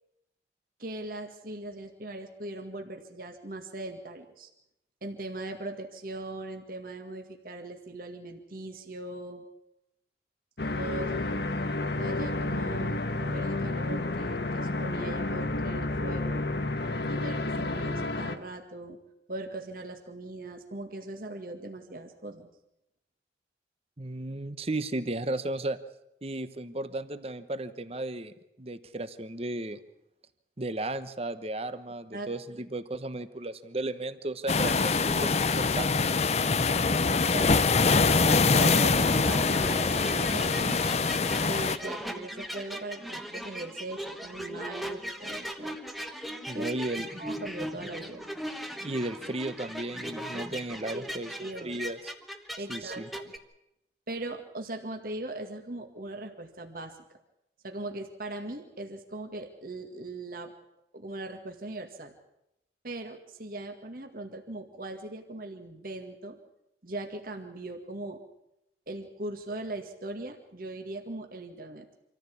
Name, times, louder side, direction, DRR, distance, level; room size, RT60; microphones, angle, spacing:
voice 1, 0.8-4.5 5.0-9.5 10.8-11.3 12.0-16.4 17.1-19.0 19.3-22.5 32.1-32.3 35.1-35.3 37.1-40.8 41.4-45.8 46.5-46.7 47.2-48.3 50.9-51.1 51.4-51.8 52.6-53.3 54.1-56.9 57.6-60.5 60.9-62.1 62.8-66.4 66.8-68.2 68.9-71.9, right 2 dB, 55° right, 4 dB, 2.0 m, -40 dB
sound 1, 10.6-18.4, left 2 dB, 70° left, 1.4 m, -30 dB
voice 2, 24.0-25.8 26.2-29.8 30.6-35.9 46.5-47.2 48.8-51.3 51.6-52.1 52.7-53.1, right 2 dB, 35° right, 12 dB, 1.1 m, -34 dB
sound 2, 34.5-41.8, left 4 dB, 40° left, 0.7 m, -24 dB
sound 3, 38.2-53.4, equal, ahead, 1.3 m, -38 dB
26.0 x 14.5 x 8.5 m, 0.85 s
head